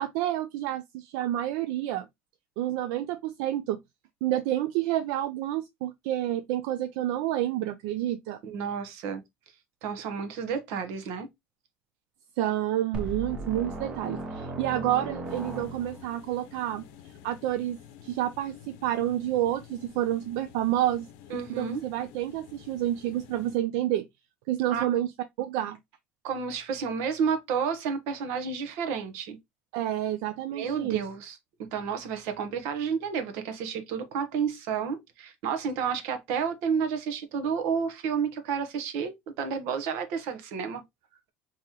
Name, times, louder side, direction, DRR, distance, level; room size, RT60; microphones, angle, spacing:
voice 1, 0.0-2.1 2.6-3.8 4.2-8.4 12.4-16.8 17.2-21.1 21.6-24.0 24.5-25.1 25.4-25.8 29.7-31.0, right 12 dB, 85° right, 0.4 m, -29 dB
voice 2, 8.4-9.2 9.8-11.3 21.3-21.8 24.7-24.8 26.2-29.4 30.5-40.8, right 6 dB, 70° right, 0.9 m, -31 dB
sound 1, 12.9-16.2, right 1 dB, 20° right, 0.7 m, -37 dB
sound 2, 15.2-23.6, left 10 dB, 85° left, 0.6 m, -51 dB
3.7 x 2.9 x 2.9 m
cardioid pair, 170°, 4 cm